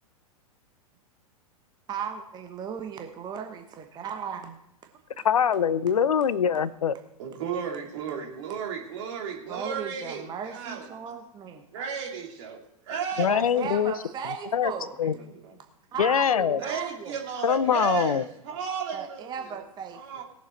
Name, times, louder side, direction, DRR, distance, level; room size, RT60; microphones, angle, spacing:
voice 1, 1.9-4.6 9.5-11.6 13.3-14.9 15.9-17.2 18.9-20.2, right 7 dB, 20° right, 5 dB, 1.1 m, -36 dB
voice 2, 5.2-6.9 13.2-13.9 14.5-14.7 15.0-15.1 16.0-16.6 17.4-18.2, left 8 dB, 70° left, 18 dB, 0.6 m, -23 dB
voice 3, 7.2-10.9 11.7-12.6 12.9-13.3 15.2-15.6 16.6-19.6 19.9-20.2, right 7 dB, 50° right, 0 dB, 2.7 m, -34 dB
19.0 x 7.2 x 4.4 m, 0.81 s
figure-of-eight pair, 100°, 19 cm